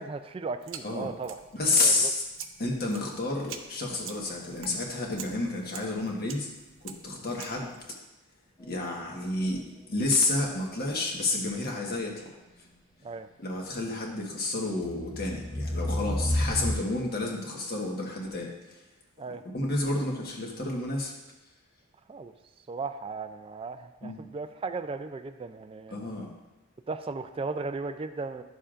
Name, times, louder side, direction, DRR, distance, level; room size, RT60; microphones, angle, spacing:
voice 1, 0.0-1.4 1.8-2.1 13.0-13.3 19.2-19.4 22.1-22.3 22.7-26.0 26.9-28.4, right 4 dB, 25° right, 9 dB, 0.3 m, -36 dB
sound 1, 0.6-7.9, right 7 dB, 65° right, 0.6 m, -46 dB
voice 2, 1.5-2.2 2.6-6.5 6.8-7.7 8.7-9.6 9.9-12.1 13.4-18.5 19.5-21.1 24.0-24.2 25.9-26.3, left 2 dB, 45° left, -1 dB, 1.4 m, -30 dB
sound 2, 8.6-10.5 11.7-11.8 14.8-16.7, left 1 dB, 20° left, 0.7 m, -32 dB
11.5 x 6.9 x 2.5 m, 1.1 s
head